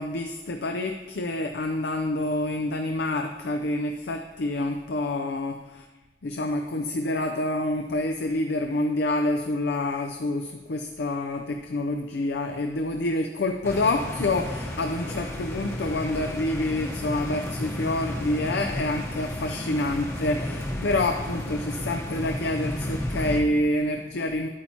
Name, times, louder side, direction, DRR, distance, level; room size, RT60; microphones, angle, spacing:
voice 1, 0.0-5.9 6.2-24.5, left 2 dB, 80° left, 5 dB, 0.5 m, -27 dB
sound 1, 13.6-23.4, left 1 dB, 15° left, 0.9 m, -33 dB
10.0 x 8.6 x 2.8 m, 1.1 s
head